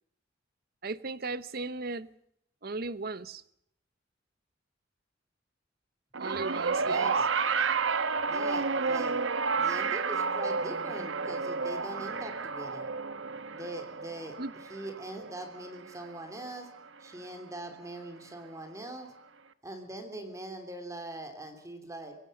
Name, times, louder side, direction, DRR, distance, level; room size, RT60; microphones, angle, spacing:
voice 1, 0.8-2.1 2.6-3.4 6.2-7.1 14.4-14.5, right 3 dB, 50° right, 0.9 m, -36 dB
Guitar Noise, 6.1-16.6 17.6-17.7, right 4 dB, 85° right, 1.1 m, -31 dB
voice 2, 6.8-7.3 8.3-9.2 9.5-12.9 13.5-14.4 14.7-16.7 17.0-19.1 19.6-22.1, right 1 dB, 15° right, 3.0 m, -42 dB
25.0 x 17.0 x 6.6 m
head